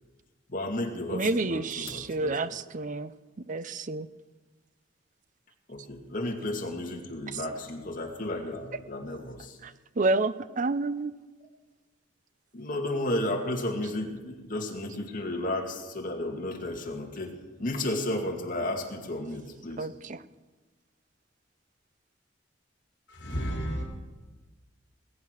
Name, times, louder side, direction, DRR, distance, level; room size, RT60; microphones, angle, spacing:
voice 1, 0.5-2.4 5.7-9.6 12.5-17.3 17.6-19.9, left 1 dB, 45° left, 2.4 m, -33 dB
voice 2, 1.1-3.1 3.5-4.1 9.6-11.1 19.8-20.2, right 3 dB, 40° right, 0.6 m, -29 dB
voice 3, 23.1-23.8, equal, 65° left, 3.6 m, -32 dB
20.5 x 8.7 x 6.4 m
head